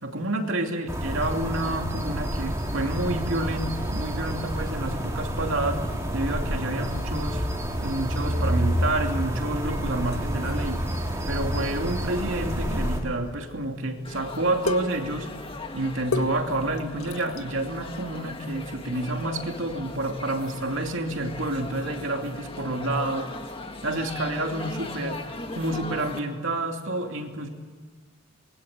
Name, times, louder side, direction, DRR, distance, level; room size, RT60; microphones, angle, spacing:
voice 1, 0.0-7.5 7.8-10.8 11.3-15.3 15.7-23.3 23.8-27.5, right 1 dB, 65° right, 4 dB, 2.7 m, -29 dB
sound 1, 0.9-13.0, equal, 15° right, 3.4 m, -28 dB
sound 2, 10.4-17.5, left 3 dB, 80° left, 1.7 m, -37 dB
Laughter / Chatter / Crowd, 14.0-26.2, left 2 dB, 25° left, 1.8 m, -38 dB
26.5 x 22.0 x 9.5 m, 1.4 s
head